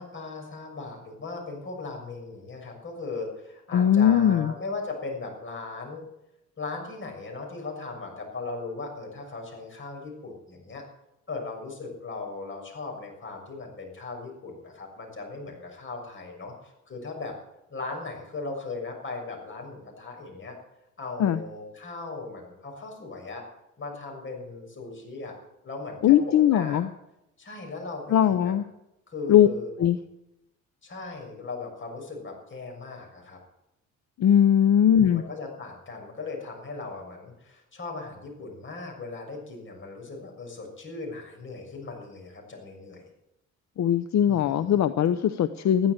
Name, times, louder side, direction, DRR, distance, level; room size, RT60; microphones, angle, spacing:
voice 1, 0.0-6.0 6.6-10.8 11.3-17.3 17.7-20.6 21.0-23.4 23.8-25.3 25.6-26.8 27.4-28.5 29.1-29.7 30.8-33.4 34.9-43.1 44.3-44.8, left 3 dB, 40° left, 1 dB, 6.5 m, -38 dB
voice 2, 3.7-4.5 21.2-21.4 26.0-26.9 28.1-28.6 29.3-29.5 29.8-30.0 34.2-35.2 43.8-45.9, left 10 dB, 65° left, 12 dB, 0.8 m, -20 dB
14.5 x 11.5 x 7.7 m, 0.88 s
cardioid pair, 90°, 30 cm